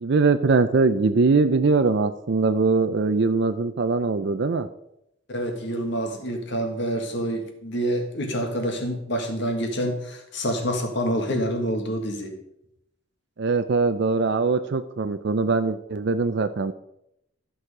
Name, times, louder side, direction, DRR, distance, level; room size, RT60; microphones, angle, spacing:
voice 1, 0.0-4.7 13.4-16.7, right 4 dB, 55° right, 10 dB, 0.5 m, -22 dB
voice 2, 5.3-12.4, equal, 55° left, 4 dB, 1.8 m, -27 dB
13.5 x 6.3 x 4.9 m, 0.81 s
head